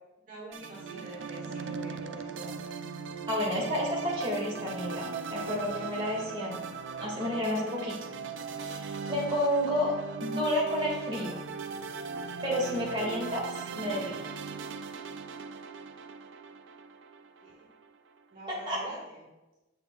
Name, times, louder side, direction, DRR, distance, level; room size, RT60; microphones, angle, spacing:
voice 1, 0.3-2.7 3.9-4.3 17.4-17.7 18.3-19.2, right 1 dB, 45° right, -6 dB, 1.4 m, -46 dB
sound 1, 0.5-17.9, right 5 dB, 70° right, 0.4 m, -39 dB
voice 2, 3.3-6.6 7.0-7.9 8.6-9.9 10.2-11.4 12.4-14.1 18.7-18.8, left 1 dB, 25° right, -5 dB, 2.3 m, -31 dB
8.5 x 6.6 x 2.5 m, 1.0 s
head